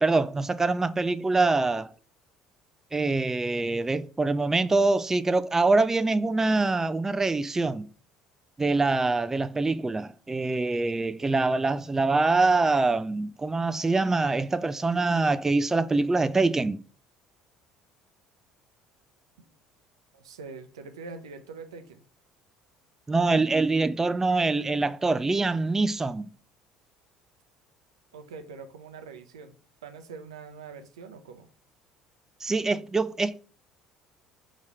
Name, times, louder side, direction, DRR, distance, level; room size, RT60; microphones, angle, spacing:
voice 1, 0.0-1.9 2.9-7.9 8.6-16.8 23.1-26.3 32.4-33.4, right 3 dB, 15° right, 0.4 m, -24 dB
voice 2, 20.1-22.0 28.1-29.6 29.8-31.5, right 4 dB, 75° right, 0.6 m, -43 dB
5.0 x 4.1 x 4.7 m
figure-of-eight pair, 60°, 3 cm